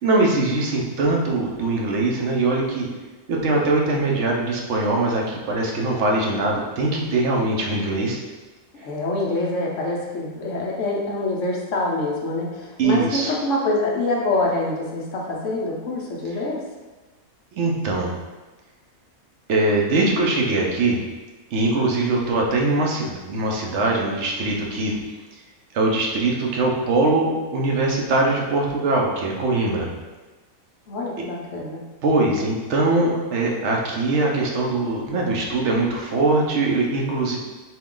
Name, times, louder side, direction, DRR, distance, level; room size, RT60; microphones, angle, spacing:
voice 1, 0.0-2.9 3.3-8.2 12.8-13.3 17.5-18.1 19.5-21.0 21.5-24.9 25.7-29.9 32.0-37.4, right 2 dB, 60° right, -1 dB, 0.9 m, -22 dB
voice 2, 8.7-16.6 30.9-31.8, left 2 dB, 65° left, -2 dB, 1.0 m, -25 dB
4.5 x 2.3 x 3.7 m, 1.2 s
omnidirectional pair, 1.5 m